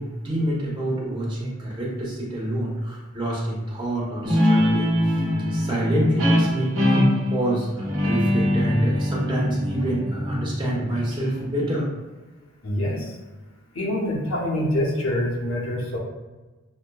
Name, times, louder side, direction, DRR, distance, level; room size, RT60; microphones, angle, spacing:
voice 1, 0.0-5.2 5.5-11.9, right 1 dB, 20° right, -5 dB, 0.9 m, -26 dB
Guitar, 4.2-11.4, left 1 dB, 60° right, 1.0 m, -23 dB
voice 2, 12.6-13.1 13.7-16.0, left 1 dB, 65° left, -3 dB, 0.9 m, -25 dB
6.4 x 2.2 x 2.3 m, 1.2 s
head